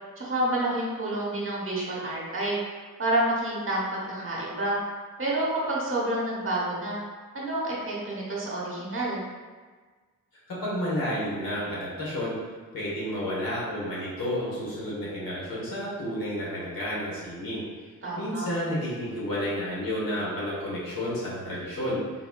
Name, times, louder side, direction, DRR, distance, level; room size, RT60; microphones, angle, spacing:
voice 1, 0.2-2.6 3.0-4.8 5.2-7.0 7.3-9.3 18.0-18.5, right 1 dB, 35° right, -5 dB, 1.0 m, -28 dB
voice 2, 10.5-12.4 12.7-17.6 18.2-22.0, equal, 80° left, -7 dB, 1.1 m, -31 dB
3.9 x 2.2 x 2.2 m, 1.4 s
cardioid pair, 50°, 35 cm